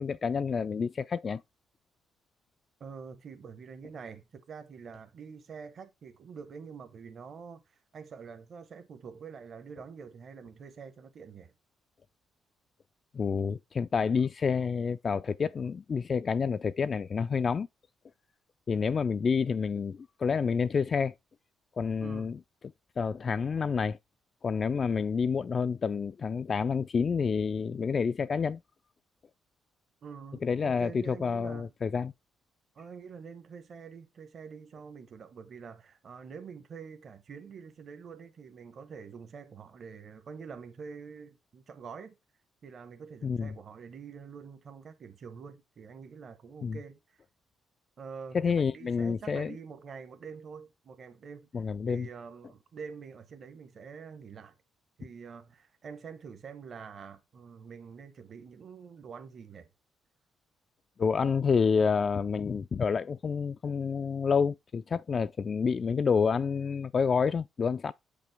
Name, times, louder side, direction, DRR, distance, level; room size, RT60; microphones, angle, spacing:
voice 1, 0.0-1.4 13.1-17.7 18.7-21.1 21.8-22.4 23.0-24.0 24.4-28.6 30.4-32.1 43.2-43.6 46.6-46.8 48.3-49.6 51.5-52.1 61.0-67.9, left 5 dB, 40° left, 0.3 m, -28 dB
voice 2, 2.8-7.6 7.9-11.5 22.0-22.3 30.0-31.7 32.7-42.1 42.6-47.2 48.0-54.5 55.0-59.7, right 6 dB, 50° right, 1.2 m, -46 dB
7.5 x 5.3 x 3.4 m
cardioid pair, 90°, 0 cm